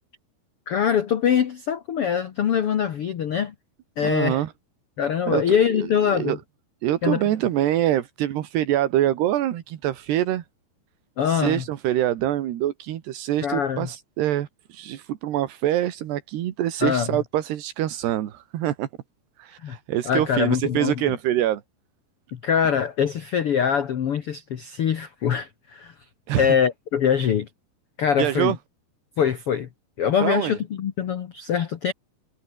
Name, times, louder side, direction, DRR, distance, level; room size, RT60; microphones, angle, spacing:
voice 1, 0.7-3.5 4.0-4.4 5.0-6.4 7.0-7.2 11.2-11.6 13.4-13.9 16.8-17.2 19.6-19.8 20.0-21.2 22.3-25.9 26.4-27.5 28.0-28.5 29.2-29.7 30.0-31.9, left 8 dB, 90° left, 1.2 m, -23 dB
voice 2, 4.0-4.5 5.3-5.4 5.7-5.9 6.1-6.4 6.8-10.5 11.3-18.9 19.4-21.6 26.3-26.6 28.2-28.6 30.2-30.6, right 12 dB, 85° right, 3.8 m, -25 dB
omnidirectional pair, 4.7 m